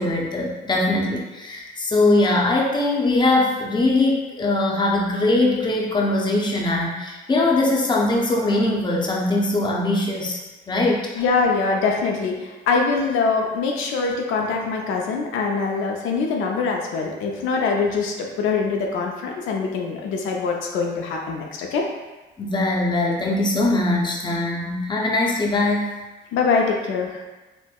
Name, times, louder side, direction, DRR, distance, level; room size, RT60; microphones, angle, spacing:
voice 1, 0.0-10.4 10.7-11.2 22.4-26.0, left 2 dB, 20° left, -2 dB, 0.6 m, -21 dB
voice 2, 11.2-21.9 26.3-27.2, left 4 dB, 90° left, 0 dB, 0.5 m, -23 dB
4.3 x 2.1 x 2.2 m, 1.1 s
cardioid pair, 90°, 20 cm